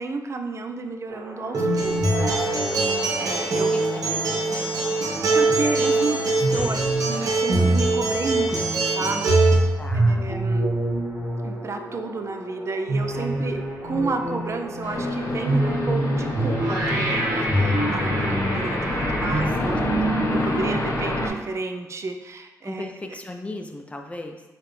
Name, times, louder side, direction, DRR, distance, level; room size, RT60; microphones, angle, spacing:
voice 1, 0.0-3.7 4.9-10.7 11.4-19.8 20.3-23.2, right 3 dB, 45° right, 5 dB, 0.5 m, -32 dB
sound 1, 1.1-19.5, right 1 dB, 85° right, 1.2 m, -27 dB
Acoustic guitar, 1.5-9.5, right 3 dB, 65° right, 0.9 m, -23 dB
voice 2, 3.2-4.6 9.8-10.3 19.2-20.0 20.3-21.1 22.6-24.4, left 2 dB, 20° left, 3 dB, 0.6 m, -38 dB
sound 2, 14.8-21.3, left 1 dB, 50° left, 1.0 m, -26 dB
4.8 x 3.3 x 3.2 m, 1.2 s
cardioid pair, 75°, 7 cm